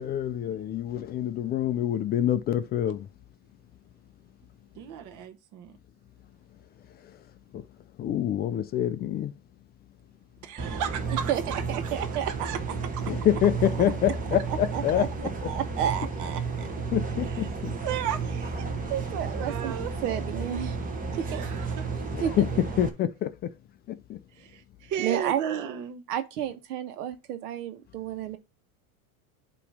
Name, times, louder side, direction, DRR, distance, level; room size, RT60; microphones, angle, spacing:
voice 1, 0.0-3.1 7.0-7.2 7.5-7.6 8.0-9.3 13.1-15.1 15.4-15.5 16.6-17.7 22.1-23.5 23.9-24.2, left 11 dB, 25° left, 0.3 m, -27 dB
voice 2, 4.7-5.7 10.4-12.6 17.2-17.5 17.8-18.7 19.3-20.0 21.1-21.9 24.3-26.0, right 9 dB, 40° right, 1.0 m, -35 dB
sound 1, 10.6-22.9, right 4 dB, 20° right, 1.3 m, -32 dB
voice 3, 11.7-12.5 14.7-15.1 15.4-16.4 18.9-19.7 20.0-20.8 21.3-21.5 22.2-22.3 25.0-25.4 26.1-28.4, right 10 dB, 85° right, 1.3 m, -31 dB
8.5 x 3.0 x 6.1 m
supercardioid pair, 120°, 45 cm